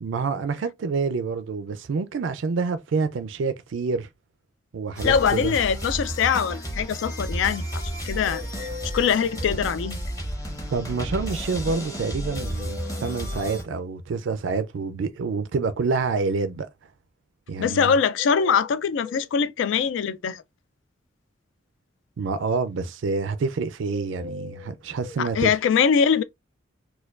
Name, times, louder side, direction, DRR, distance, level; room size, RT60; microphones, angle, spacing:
voice 1, 0.0-4.1 4.7-5.5 10.7-16.7 17.5-17.9 22.2-25.5, right 4 dB, 70° right, 0.4 m, -27 dB
sound 1, 4.9-13.6, equal, 20° left, 0.9 m, -32 dB
voice 2, 5.0-8.7 8.9-10.0 17.6-20.4 25.2-26.2, left 7 dB, 70° left, 0.3 m, -23 dB
sound 2, 8.2-9.7 12.3-13.7 17.9-19.3 23.9-25.2, left 4 dB, 10° right, 0.5 m, -40 dB
4.3 x 2.3 x 2.4 m
head